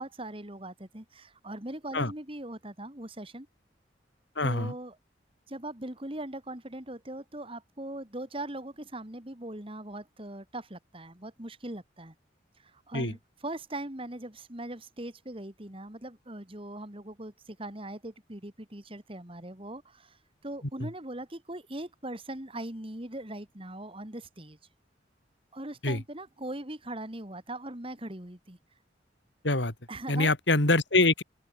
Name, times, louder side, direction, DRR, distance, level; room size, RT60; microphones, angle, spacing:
voice 1, 0.0-3.5 4.4-5.0 5.5-12.1 12.6-20.2 20.4-24.6 25.5-28.6 29.9-30.3, right 1 dB, 30° right, 2.8 m, -40 dB
voice 2, 4.4-4.7 12.9-13.1 20.8-20.9 25.8-26.0 29.4-29.7 30.1-31.2, left 2 dB, 80° left, 3.9 m, -25 dB
open air
head